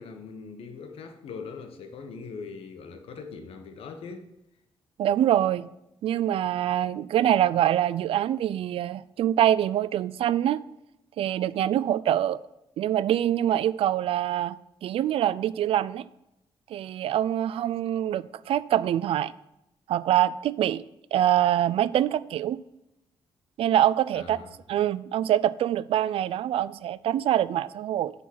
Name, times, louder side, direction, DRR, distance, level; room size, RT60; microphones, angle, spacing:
voice 1, 0.0-4.3 24.1-24.6, left 5 dB, 90° left, 1.3 m, -41 dB
voice 2, 5.0-5.7 6.0-10.6 11.2-12.4 12.8-16.1 16.7-19.3 19.9-20.8 21.1-22.6 23.6-24.4 24.7-28.1, right 11 dB, 80° right, 0.4 m, -24 dB
10.0 x 4.1 x 7.5 m
cardioid pair, 130°, 10 cm